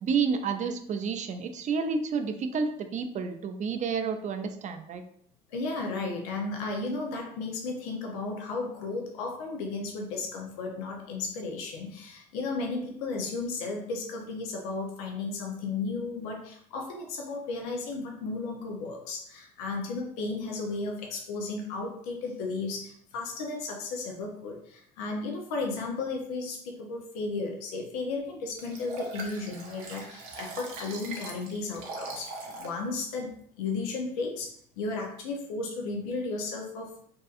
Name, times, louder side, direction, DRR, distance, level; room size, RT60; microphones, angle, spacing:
voice 1, 0.0-5.0, right 5 dB, 40° right, 7 dB, 0.4 m, -30 dB
voice 2, 5.5-32.3 32.6-33.3 33.6-36.9, left 3 dB, 80° left, 1 dB, 0.5 m, -34 dB
Liquid, 28.6-32.8 33.2-33.3, right 3 dB, 80° right, 0.6 m, -40 dB
2.7 x 2.3 x 2.4 m, 0.66 s
hypercardioid pair, 65°, 19 cm